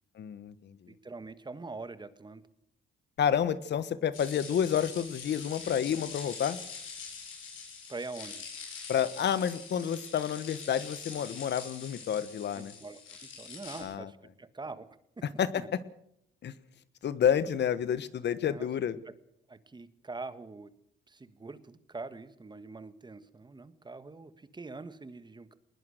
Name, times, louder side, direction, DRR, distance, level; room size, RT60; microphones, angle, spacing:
voice 1, 0.2-0.9 3.2-6.6 8.9-12.7 13.8-14.1 15.2-15.8 16.4-16.5 17.0-19.0, left 8 dB, 60° left, 15 dB, 1.3 m, -29 dB
voice 2, 0.9-2.4 7.9-8.5 12.5-14.9 15.2-15.3 15.5-15.7 18.4-18.7 19.1-19.2 19.5-20.7 21.1-25.5, right 3 dB, 20° right, 12 dB, 1.5 m, -44 dB
sound 1, 4.1-13.8, left 5 dB, 85° left, 7.9 m, -44 dB
20.5 x 19.5 x 6.6 m, 0.75 s
cardioid pair, 90°, 20 cm